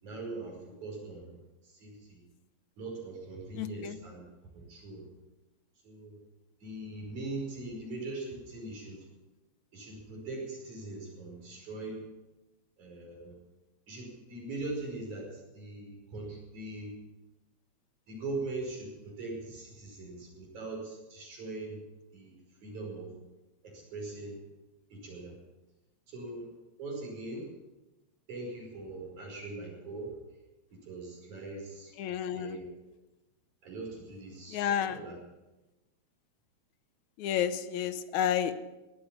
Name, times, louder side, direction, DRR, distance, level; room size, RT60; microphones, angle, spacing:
voice 1, 0.0-2.2 2.8-4.2 4.5-5.1 5.8-6.2 6.6-9.1 9.7-12.1 12.8-13.4 13.9-16.9 18.1-21.8 22.1-22.4 22.6-23.1 23.6-24.4 24.9-25.4 26.1-26.5 26.8-27.5 28.3-30.2 30.7-31.9 32.3-32.6 33.6-35.2, right 2 dB, 85° right, -1 dB, 6.7 m, -41 dB
voice 2, 3.6-4.0 32.0-32.6 34.5-35.0 37.2-38.5, left 9 dB, 80° left, 12 dB, 2.2 m, -31 dB
18.0 x 13.0 x 5.9 m, 1.1 s
omnidirectional pair, 3.3 m